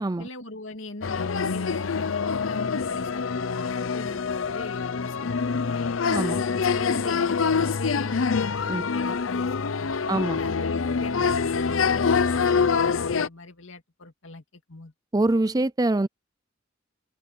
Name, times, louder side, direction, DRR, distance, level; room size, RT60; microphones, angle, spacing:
voice 1, 0.2-6.0 6.5-8.5 8.8-14.9, left 2 dB, 75° left, 2.5 m, -41 dB
sound 1, 1.0-13.3, left 5 dB, 90° left, 0.7 m, -25 dB
voice 2, 6.1-6.4 8.7-8.9 10.1-10.4 15.1-16.1, right 2 dB, 20° right, 0.5 m, -24 dB
open air
head